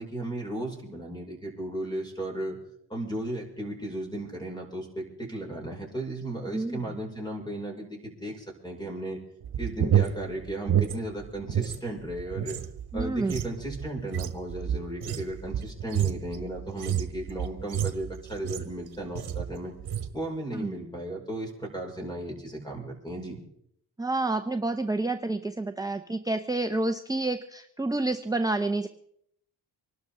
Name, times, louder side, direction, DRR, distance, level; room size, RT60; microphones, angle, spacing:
voice 1, 0.0-2.6 2.9-9.2 9.6-12.6 12.9-19.7 20.1-23.4, right 1 dB, 10° left, 0 dB, 5.6 m, -35 dB
sound 1, 9.4-11.8 12.1-18.8 19.2-19.5 19.8-20.2, right 9 dB, 65° right, 1.3 m, -29 dB
voice 2, 12.9-13.3 20.5-20.8 24.0-28.9, right 2 dB, 10° right, 7 dB, 0.7 m, -29 dB
25.0 x 12.0 x 3.7 m, 0.70 s
cardioid pair, 90°, 41 cm